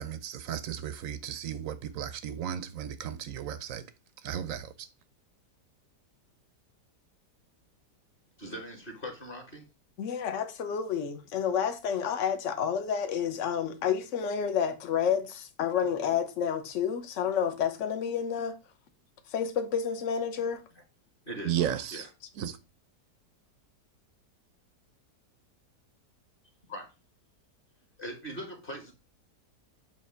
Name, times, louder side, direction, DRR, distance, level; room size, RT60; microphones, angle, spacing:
voice 1, 0.0-3.9 4.2-4.9 21.4-22.1 22.4-22.6, right 10 dB, 65° right, 0.9 m, -34 dB
voice 2, 8.4-9.7 21.3-21.5 21.9-22.1 26.7-26.9 28.0-28.9, equal, 35° left, 1.6 m, -40 dB
voice 3, 10.0-18.6 19.3-20.6, left 7 dB, 55° left, 1.1 m, -30 dB
7.6 x 2.9 x 5.6 m
omnidirectional pair, 1.8 m